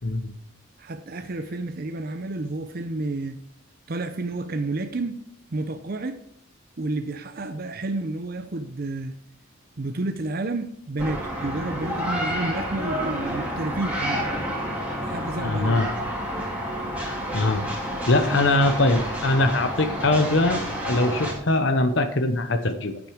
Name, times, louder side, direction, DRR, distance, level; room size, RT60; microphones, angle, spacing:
voice 1, 0.0-0.3 15.4-15.9 17.0-17.6 18.1-23.0, left 2 dB, 55° left, 9 dB, 0.8 m, -22 dB
voice 2, 0.8-3.4 3.9-5.2 5.5-6.2 6.8-9.1 9.8-14.2 15.0-15.9 18.2-18.5, right 2 dB, 45° right, 8 dB, 0.6 m, -30 dB
sound 1, 11.0-21.3, equal, 5° right, 2.7 m, -29 dB
9.0 x 8.8 x 5.0 m, 0.73 s
head